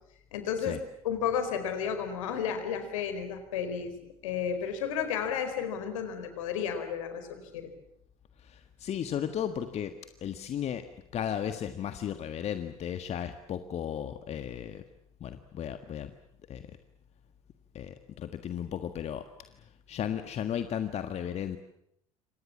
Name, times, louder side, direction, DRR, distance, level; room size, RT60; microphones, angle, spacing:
voice 1, 0.3-0.8 1.0-7.7, left 7 dB, 65° left, 9 dB, 4.4 m, -32 dB
voice 2, 8.4-10.8 11.1-14.8 15.2-16.1 16.5-16.8 17.7-21.6, left 9 dB, 35° left, 9 dB, 1.6 m, -35 dB
28.0 x 26.0 x 7.4 m, 0.75 s
figure-of-eight pair, 65°, 18 cm